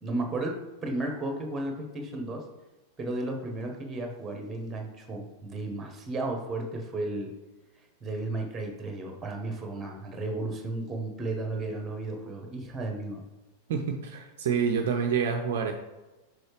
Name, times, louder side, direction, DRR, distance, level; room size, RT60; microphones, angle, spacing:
voice 1, 0.0-2.4 3.0-7.3 8.0-13.2, right 2 dB, 15° right, 2 dB, 1.4 m, -34 dB
voice 2, 13.7-15.7, right 6 dB, 55° right, 3 dB, 0.5 m, -27 dB
6.2 x 5.0 x 3.3 m, 1.1 s
figure-of-eight pair, 90°, 0 cm